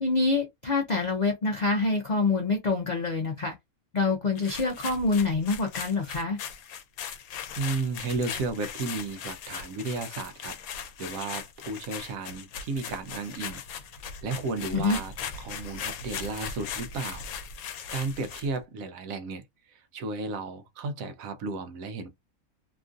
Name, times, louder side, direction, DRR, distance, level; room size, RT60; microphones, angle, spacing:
voice 1, 0.0-3.5 3.9-6.4 14.7-15.0, left 3 dB, 60° left, 0.4 m, -26 dB
sound 1, 4.4-18.6, left 7 dB, 85° left, 1.1 m, -39 dB
voice 2, 7.6-10.6 11.0-13.6 14.2-15.1 15.4-17.3 17.9-19.4 19.7-22.1, right 3 dB, 75° right, 1.0 m, -33 dB
2.9 x 2.5 x 2.4 m
omnidirectional pair, 1.5 m